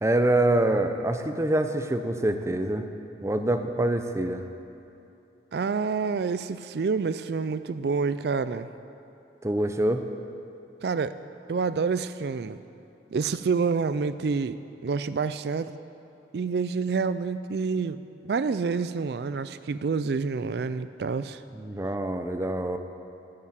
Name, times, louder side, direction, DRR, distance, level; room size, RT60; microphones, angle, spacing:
voice 1, 0.0-2.9 3.2-4.4 9.4-10.0 21.5-22.8, right 1 dB, 15° right, 7 dB, 0.6 m, -25 dB
voice 2, 5.5-8.7 10.8-11.2 11.5-12.6 13.1-15.7 16.3-21.4, right 5 dB, 65° right, 13 dB, 0.4 m, -28 dB
10.0 x 8.7 x 8.8 m, 2.7 s
head